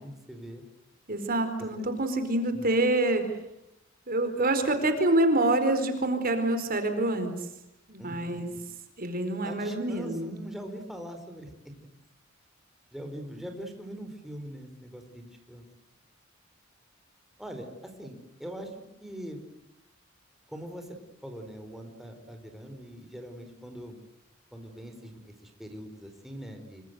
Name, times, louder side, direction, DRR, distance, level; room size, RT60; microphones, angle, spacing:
voice 1, 0.0-0.6 2.5-2.6 8.0-8.4 9.4-11.5 12.9-15.6 17.4-18.7 19.0-19.4 20.5-20.9 21.2-23.9 24.5-26.8, equal, ahead, 4 dB, 4.6 m, -42 dB
voice 2, 1.1-3.2 4.1-7.3 7.9-8.5 9.0-10.3, right 2 dB, 45° right, 8 dB, 4.4 m, -26 dB
27.0 x 25.0 x 8.1 m, 0.85 s
head